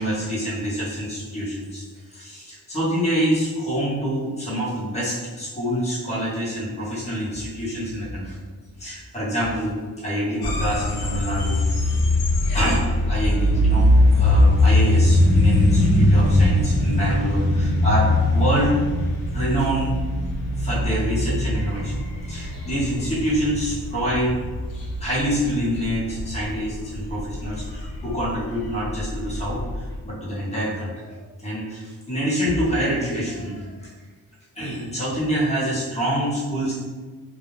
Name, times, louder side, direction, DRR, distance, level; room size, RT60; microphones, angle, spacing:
voice 1, 0.0-1.8 2.1-8.4 8.8-12.0 12.5-18.8 19.3-20.0 20.5-21.9 22.3-24.4 24.8-29.6 30.0-31.1 31.4-33.9 34.5-36.7, equal, 20° left, -9 dB, 0.8 m, -26 dB
sound 1, 10.4-30.0, left 1 dB, 85° left, 0.6 m, -21 dB
2.3 x 2.1 x 3.1 m, 1.3 s
wide cardioid pair, 180°, 37 cm